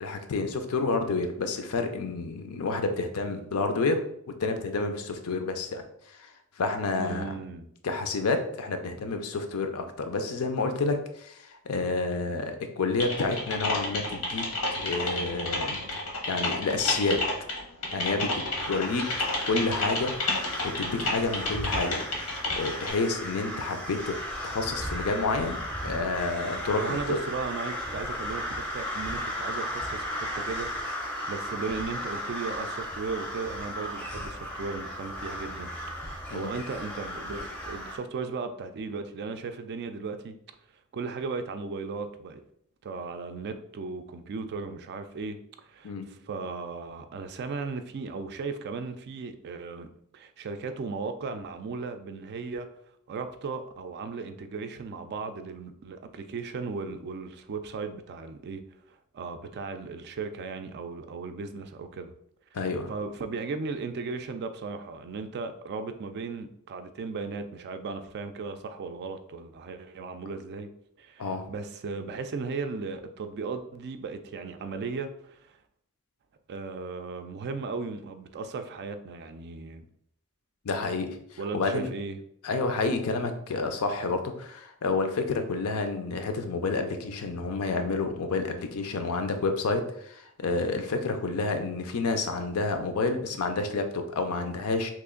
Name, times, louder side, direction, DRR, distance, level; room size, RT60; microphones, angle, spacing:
voice 1, 0.0-4.0 4.4-6.3 6.6-7.4 7.8-14.4 14.7-15.9 16.3-17.2 17.9-19.1 19.5-20.1 20.6-22.0 22.6-24.2 24.4-27.2 36.3-36.5 45.8-46.1 62.5-62.9 71.2-71.5 80.6-81.2 81.5-81.9 82.4-94.9, left 3 dB, 70° left, 7 dB, 0.5 m, -29 dB
voice 2, 7.0-7.7 26.8-30.7 31.0-35.7 36.0-40.3 40.9-42.4 42.8-49.9 50.1-52.7 53.1-58.6 58.9-62.1 62.9-70.7 71.0-75.6 76.5-79.8 81.4-82.2, right 4 dB, 50° right, 8 dB, 0.3 m, -36 dB
Typing, 13.0-22.9, left 2 dB, 90° left, 1.0 m, -31 dB
sound 1, 18.5-38.0, equal, 5° left, 0.5 m, -36 dB
3.0 x 2.5 x 3.7 m, 0.69 s
head